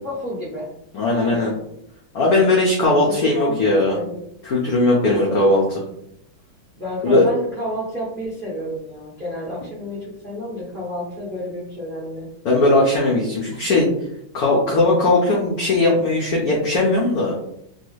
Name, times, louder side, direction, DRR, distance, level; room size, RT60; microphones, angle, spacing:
voice 1, 0.0-0.6 1.1-1.5 3.0-4.2 5.0-5.5 6.8-12.3, left 1 dB, 60° right, -7 dB, 0.5 m, -30 dB
voice 2, 0.9-1.5 2.1-4.0 4.4-5.6 7.0-7.2 12.4-13.9 14.3-17.3, left 2 dB, 80° left, -3 dB, 0.8 m, -18 dB
3.3 x 2.3 x 3.1 m, 0.76 s
omnidirectional pair, 2.3 m